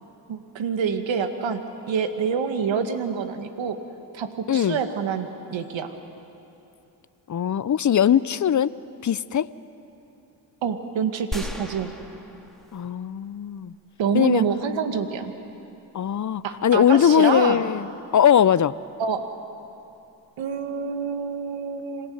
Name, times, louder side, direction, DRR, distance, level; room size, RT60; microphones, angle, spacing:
voice 1, 0.3-3.8 4.1-5.9 10.6-11.9 14.0-15.3 16.4-17.6 19.0-19.3 20.4-22.1, right 6 dB, 65° right, 7 dB, 2.1 m, -27 dB
voice 2, 4.5-4.8 7.3-8.7 9.0-9.5 12.7-13.7 14.1-14.4 15.9-18.8, left 9 dB, 35° left, 18 dB, 0.8 m, -20 dB
sound 1, 11.3-13.2 13.6-13.7, left 1 dB, ahead, 2.7 m, -36 dB
26.5 x 17.0 x 9.5 m, 2.8 s
supercardioid pair, 55°, 49 cm